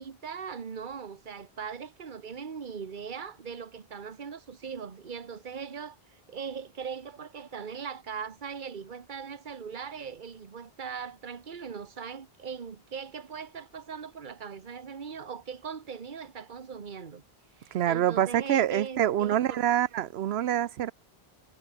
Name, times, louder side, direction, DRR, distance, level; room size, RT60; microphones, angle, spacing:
voice 1, 0.0-17.2 17.6-19.6, right 6 dB, 50° right, 1.4 m, -40 dB
voice 2, 17.7-20.9, right 11 dB, 90° right, 0.9 m, -26 dB
omnidirectional pair, 1.0 m